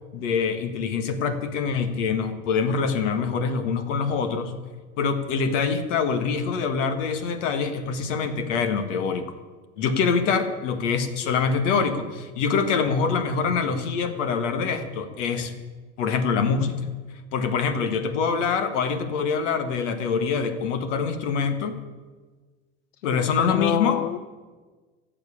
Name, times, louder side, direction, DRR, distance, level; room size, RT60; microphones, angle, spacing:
voice 1, 0.1-4.5 5.0-9.3 9.8-15.5 16.0-16.9 17.3-21.8 23.0-24.0, left 5 dB, 75° left, 9 dB, 1.7 m, -25 dB
voice 2, 23.2-24.2, left 12 dB, 90° left, 14 dB, 0.6 m, -27 dB
13.5 x 7.7 x 8.7 m, 1.4 s
hypercardioid pair, 90°, 37 cm